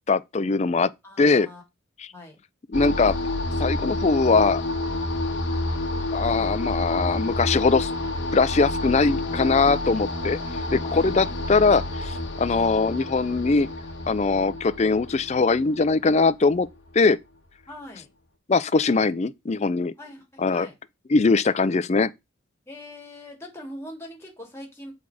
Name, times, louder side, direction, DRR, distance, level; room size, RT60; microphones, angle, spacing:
voice 1, 0.1-0.9 1.2-1.5 2.7-3.1 3.6-4.6 6.1-7.9 8.3-10.4 10.7-13.7 14.1-16.7 16.9-17.2 18.5-19.9 20.4-20.7 21.1-22.1, left 4 dB, 30° left, 0.4 m, -21 dB
voice 2, 1.0-1.6 2.1-2.4 10.2-11.6 17.7-18.1 20.0-20.7 22.7-24.9, left 1 dB, 10° left, 2.6 m, -42 dB
sound 1, 2.7-16.9, left 2 dB, 60° left, 1.5 m, -29 dB
7.0 x 4.1 x 4.9 m
head